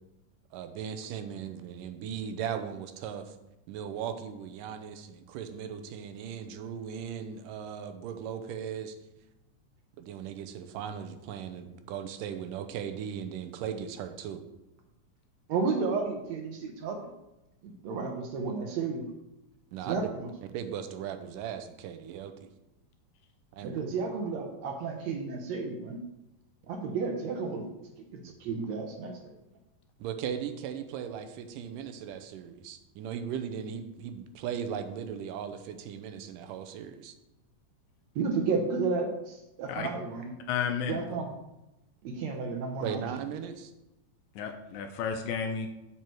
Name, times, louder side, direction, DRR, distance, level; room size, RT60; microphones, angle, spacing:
voice 1, 0.5-3.4 3.7-9.0 10.0-14.4 19.7-20.0 20.5-22.5 23.5-23.8 28.2-28.3 30.0-37.1 42.8-43.7, right 8 dB, 85° right, 8 dB, 2.3 m, -38 dB
voice 2, 15.5-17.1 17.6-19.1 19.9-20.3 23.6-26.0 26.7-27.7 28.1-29.3 38.2-40.2 40.9-41.3 42.0-43.0, right 4 dB, 70° right, 3 dB, 1.8 m, -32 dB
voice 3, 40.5-41.0 44.4-45.7, left 7 dB, 75° left, 6 dB, 1.9 m, -32 dB
7.6 x 6.8 x 4.6 m, 0.93 s
omnidirectional pair, 3.8 m